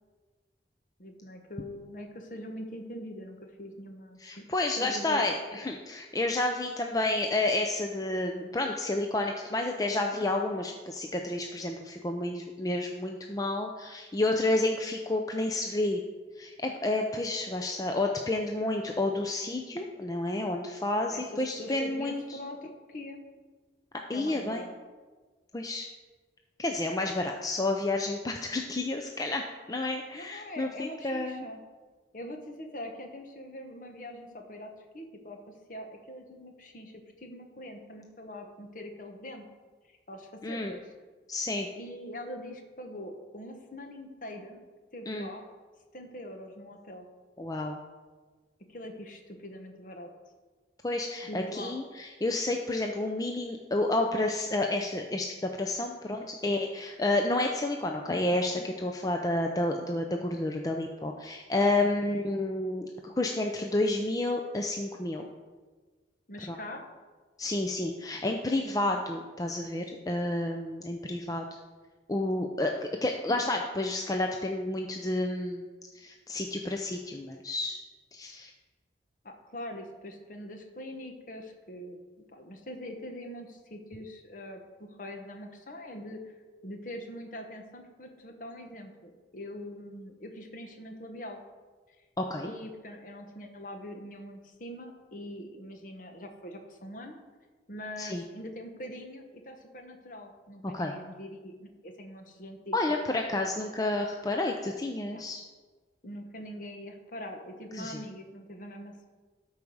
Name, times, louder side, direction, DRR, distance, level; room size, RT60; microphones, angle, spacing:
voice 1, 1.0-4.5 4.8-5.3 20.9-23.2 24.1-24.7 30.1-31.6 32.1-35.4 35.7-39.4 39.9-40.8 41.7-44.6 44.9-45.4 45.9-47.1 48.7-50.1 51.3-51.8 66.3-66.8 79.2-82.0 82.3-86.4 86.6-91.4 92.4-97.2 97.7-102.8 103.3-103.5 105.1-105.3 106.0-109.1, left 1 dB, 45° left, 4 dB, 1.2 m, -43 dB
voice 2, 4.2-16.0 16.4-22.4 24.1-24.6 25.5-25.9 26.6-29.4 29.7-31.4 40.4-40.7 41.3-41.7 45.1-45.3 47.4-47.8 50.8-65.3 66.5-66.6 67.4-71.4 72.1-75.7 75.9-77.8 78.1-78.5 92.2-92.5 98.0-98.2 100.7-100.9 102.7-105.4 107.8-108.0, left 2 dB, 20° left, 3 dB, 0.5 m, -30 dB
12.5 x 4.8 x 5.4 m, 1.4 s
head